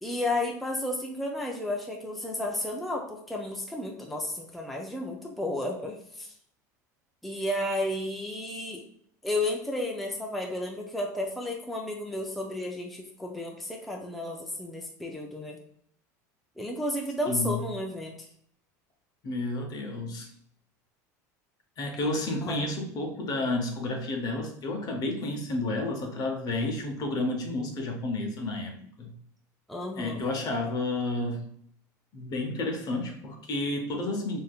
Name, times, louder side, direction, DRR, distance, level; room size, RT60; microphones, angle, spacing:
voice 1, 0.0-6.3 7.2-8.8 9.2-15.6 16.6-18.1 22.4-22.6 29.7-30.2, left 1 dB, ahead, -1 dB, 0.5 m, -32 dB
voice 2, 17.3-17.7 19.2-20.3 21.8-29.2 29.9-31.4 32.1-34.4, left 2 dB, 45° left, 3 dB, 0.8 m, -31 dB
3.5 x 2.6 x 2.3 m, 0.65 s
supercardioid pair, 100°, 9 cm